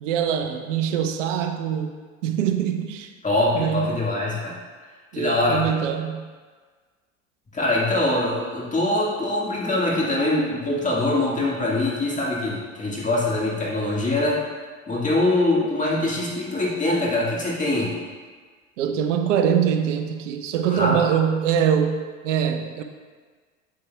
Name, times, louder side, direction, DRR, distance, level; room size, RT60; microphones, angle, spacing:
voice 1, 0.0-3.1 3.5-3.9 5.1-6.3 18.8-22.8, right 8 dB, 75° right, 6 dB, 0.8 m, -23 dB
voice 2, 3.2-4.5 5.1-5.7 7.5-14.4 14.9-17.9 20.7-21.0, left 2 dB, 20° left, -5 dB, 1.7 m, -23 dB
8.3 x 8.1 x 2.3 m, 1.5 s
hypercardioid pair, 85°, 37 cm